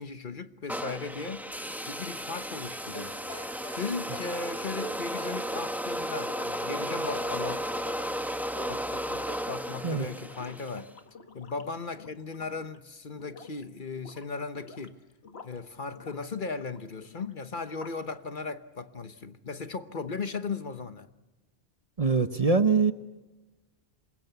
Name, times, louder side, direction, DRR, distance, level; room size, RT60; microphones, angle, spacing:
voice 1, 0.0-3.2 3.7-7.6 8.0-8.1 8.7-10.9 11.3-15.0 15.4-21.1, left 4 dB, 50° left, 1.2 m, -37 dB
sound 1, 0.7-10.9, equal, ahead, 1.1 m, -34 dB
sound 2, 2.9-4.4 4.8-5.8 6.7-8.2 8.6-9.6, left 1 dB, 90° left, 2.6 m, -44 dB
sound 3, 6.2-12.8 13.1-13.6 13.9-15.6 15.9-18.1, left 4 dB, 75° left, 1.8 m, -50 dB
voice 2, 22.0-22.9, right 4 dB, 35° right, 1.0 m, -23 dB
27.5 x 22.0 x 8.1 m
omnidirectional pair, 1.1 m